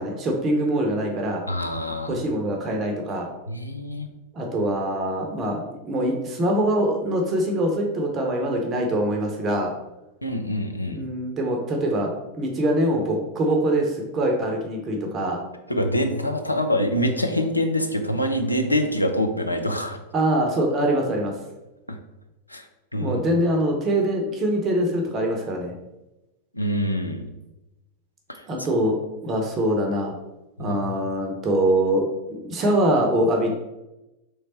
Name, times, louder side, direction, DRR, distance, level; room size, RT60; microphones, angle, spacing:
voice 1, 0.0-1.4 2.1-3.3 4.3-9.7 10.9-15.4 20.1-21.3 23.0-25.7 28.5-29.0 29.2-30.1 30.6-33.5, right 1 dB, 30° right, 1 dB, 0.8 m, -23 dB
voice 2, 1.5-2.2 3.5-4.1 10.2-11.0 15.7-20.0 21.9-22.0 22.5-22.7 22.9-23.2 26.5-27.3 30.6-31.0, equal, 85° left, 5 dB, 0.4 m, -25 dB
3.3 x 3.2 x 4.1 m, 0.99 s
figure-of-eight pair, 90°, 0 cm